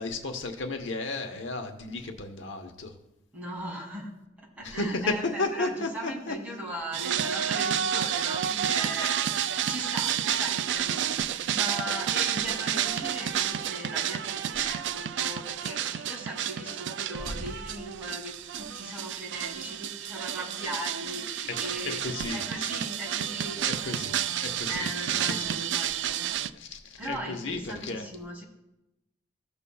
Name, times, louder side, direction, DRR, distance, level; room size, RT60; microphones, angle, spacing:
voice 1, 0.0-2.9 4.6-6.3 17.2-17.5 22.0-22.4 23.6-24.9 25.3-25.6 26.5-28.0, left 2 dB, 80° left, 4 dB, 1.0 m, -33 dB
voice 2, 3.3-22.0 22.3-23.7 24.7-26.2 27.0-28.4, right 1 dB, 10° right, -4 dB, 2.5 m, -38 dB
sound 1, 6.9-26.5, right 10 dB, 65° right, 0.3 m, -30 dB
16.5 x 6.9 x 2.3 m, 0.92 s
head